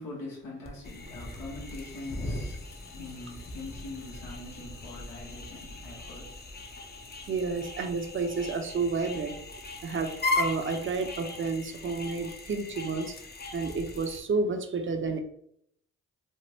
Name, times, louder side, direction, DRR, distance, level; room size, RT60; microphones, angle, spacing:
voice 1, 0.0-6.6, left 2 dB, 80° left, 1.1 m, -43 dB
sound 1, 0.6-14.2, left 2 dB, 30° left, 0.7 m, -38 dB
voice 2, 7.3-9.4 9.8-13.2 13.5-15.2, right 4 dB, 35° right, 0.6 m, -30 dB
3.3 x 2.1 x 2.8 m
hypercardioid pair, 40°, 33 cm